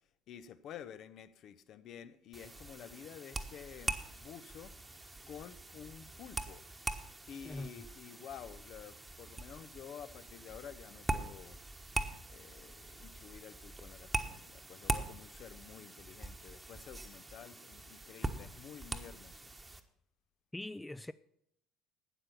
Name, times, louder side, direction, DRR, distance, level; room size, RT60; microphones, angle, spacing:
voice 1, 0.3-4.7 5.3-6.6 7.3-11.6 12.3-19.4, left 9 dB, 50° left, 0.7 m, -51 dB
sound 1, 2.3-19.8, right 2 dB, 15° right, 1.2 m, -42 dB
voice 2, 20.5-21.1, left 2 dB, 10° left, 0.4 m, -42 dB
12.5 x 9.0 x 5.7 m
figure-of-eight pair, 55°, 0 cm